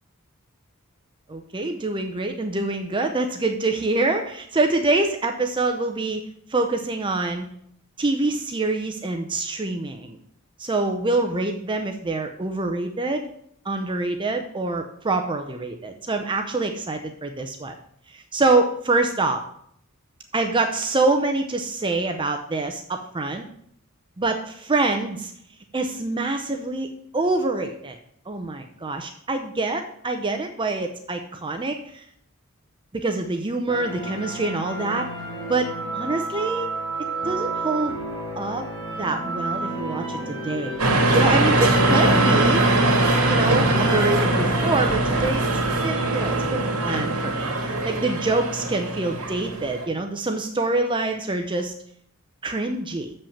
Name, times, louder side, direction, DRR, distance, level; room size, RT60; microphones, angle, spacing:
voice 1, 1.3-7.5 8.0-10.2 10.6-13.3 13.6-17.7 18.1-19.4 20.3-23.5 24.2-25.3 25.7-26.9 27.1-28.0 28.3-32.0 32.9-35.1 35.5-36.7 37.2-38.0 38.4-38.6 39.0-40.8 41.1-42.6 43.3-45.4 45.8-51.7 52.4-53.1, right 2 dB, 20° right, 5 dB, 0.6 m, -25 dB
sound 1, 33.7-47.5, right 2 dB, 20° left, 2.4 m, -31 dB
sound 2, 40.8-49.9, right 2 dB, 75° right, 1.9 m, -21 dB
7.2 x 5.4 x 7.2 m, 0.68 s
head